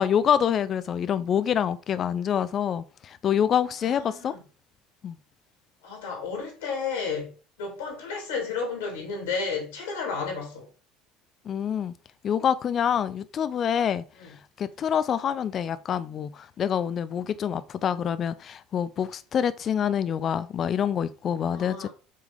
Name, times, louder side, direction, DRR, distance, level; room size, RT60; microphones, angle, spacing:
voice 1, 0.0-4.3 5.0-5.2 11.5-11.9 12.2-14.0 14.6-21.9, left 8 dB, 40° left, 0.5 m, -26 dB
voice 2, 3.8-4.4 5.8-7.3 7.6-10.7 14.2-14.3 21.4-21.9, left 5 dB, 75° left, 2.4 m, -32 dB
7.5 x 3.6 x 3.6 m
figure-of-eight pair, 65°, 0 cm